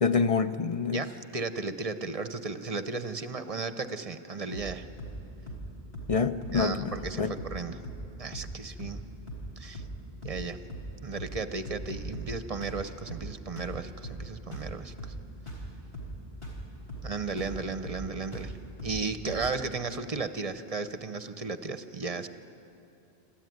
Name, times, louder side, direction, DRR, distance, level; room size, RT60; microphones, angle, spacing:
voice 1, 0.0-1.0 6.1-7.3, left 5 dB, 40° left, 10 dB, 0.6 m, -27 dB
voice 2, 0.9-4.9 6.5-7.8 8.2-9.0 9.6-9.8 10.2-10.6 11.0-15.1 17.0-18.5 18.8-22.3, right 4 dB, 40° right, 10 dB, 0.8 m, -35 dB
sound 1, 4.5-4.7 5.0-5.2 5.5-5.7 5.9-6.2 6.4-6.6 6.9-7.1 7.4-7.6 7.8-8.1 8.3-8.5 8.8-9.0 9.3-9.5 9.7-10.0 10.2-10.4 10.7-10.9 11.2-11.4 11.6-12.3 12.6-12.8 13.1-13.3 13.6-13.8 14.0-14.2 14.5-14.7 15.0-15.2 15.5-15.7 15.9-16.2 16.4-16.6 16.9-17.1 17.4-17.6 17.8-18.1 18.3-18.5 18.8-19.0 19.3-19.5, right 1 dB, 70° left, 4.3 m, -39 dB
27.0 x 13.5 x 9.4 m, 2.7 s
omnidirectional pair, 1.0 m